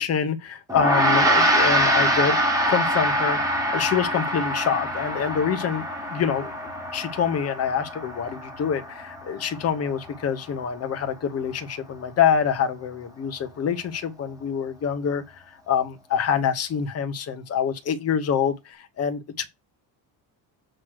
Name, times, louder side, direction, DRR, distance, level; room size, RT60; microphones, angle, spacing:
voice 1, 0.0-2.4 2.7-3.4 3.7-15.2 15.7-19.5, left 7 dB, 35° left, 1.1 m, -26 dB
Gong, 0.7-10.2, equal, 10° right, 1.5 m, -24 dB
7.7 x 3.1 x 6.2 m
cardioid pair, 175°, 42 cm